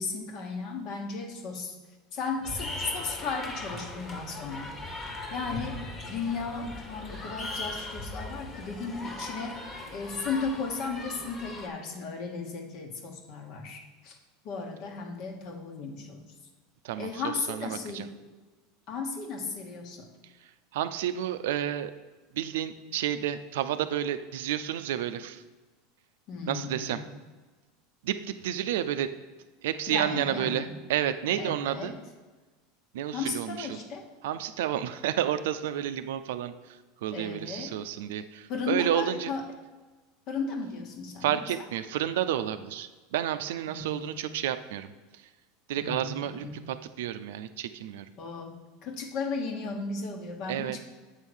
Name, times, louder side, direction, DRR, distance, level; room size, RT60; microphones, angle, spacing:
voice 1, 0.0-1.7 2.1-4.7 5.3-5.8 6.1-9.6 9.9-14.2 14.4-16.2 17.0-18.1 18.9-20.1 26.3-27.0 29.9-30.7 31.3-31.9 33.1-34.1 37.1-37.7 38.5-39.4 40.3-41.6 43.7-44.3 45.8-46.7 48.2-48.5 48.8-50.8, left 4 dB, 55° left, 4 dB, 1.4 m, -35 dB
sound 1, 2.4-11.7, left 2 dB, 30° left, 1.4 m, -39 dB
voice 2, 16.8-18.1 20.4-21.9 22.3-25.4 26.5-27.0 28.0-29.1 29.6-31.9 32.9-33.8 34.2-39.3 41.2-45.3 45.7-48.1 50.5-50.8, right 11 dB, 75° right, 11 dB, 0.4 m, -31 dB
8.1 x 3.8 x 6.2 m, 1.3 s
hypercardioid pair, 105°, 0 cm